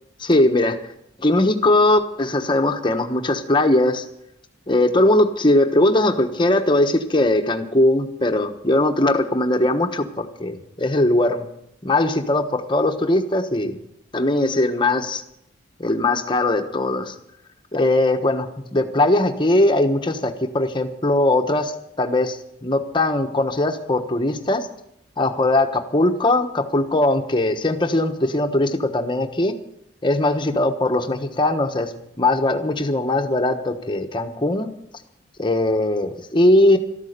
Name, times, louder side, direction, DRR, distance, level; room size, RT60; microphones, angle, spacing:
voice 1, 0.2-0.8 1.2-4.0 4.7-11.5 11.8-13.8 14.1-15.2 15.8-17.1 17.7-21.7 22.0-24.7 25.2-29.6 30.0-34.7 35.4-36.8, left 1 dB, 25° left, 6 dB, 1.2 m, -20 dB
13.5 x 13.0 x 6.7 m, 0.77 s
head